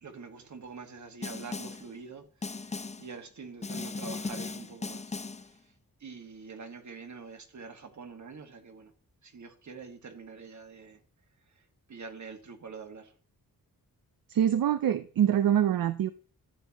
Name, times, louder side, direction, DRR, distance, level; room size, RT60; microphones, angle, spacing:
voice 1, 0.0-5.2 5.6-5.7 6.0-8.9 9.2-11.0 11.5-11.6 11.9-13.1, right 5 dB, 55° right, 1.6 m, -45 dB
Snare drum, 1.2-1.9 2.4-3.1 3.6-5.5, left 3 dB, 20° left, 0.5 m, -37 dB
voice 2, 14.3-16.1, right 10 dB, 70° right, 0.6 m, -25 dB
13.5 x 8.2 x 3.0 m
wide cardioid pair, 155°, 36 cm